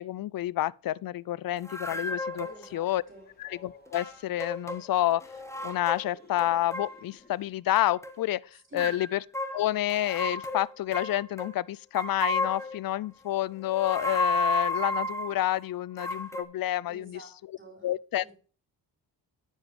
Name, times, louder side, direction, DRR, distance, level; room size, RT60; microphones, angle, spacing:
voice 1, 0.0-2.5 2.7-3.0 3.4-5.3 5.6-8.4 8.7-9.2 9.5-17.2 17.8-18.2, left 14 dB, 55° left, 0.5 m, -29 dB
sound 1, 1.6-2.7 3.9-4.8 5.1-6.1 6.4-7.0 7.8-8.2 8.8-11.5 12.0-12.8 13.6-15.4 16.0-16.4, left 2 dB, 5° left, 1.6 m, -32 dB
Train, 1.7-7.5, left 4 dB, 20° left, 2.7 m, -56 dB
voice 2, 2.4-3.3 8.7-9.0 16.9-17.9 18.2-18.3, right 1 dB, 30° right, 4.3 m, -50 dB
9.6 x 7.2 x 3.2 m
cardioid pair, 65°, 42 cm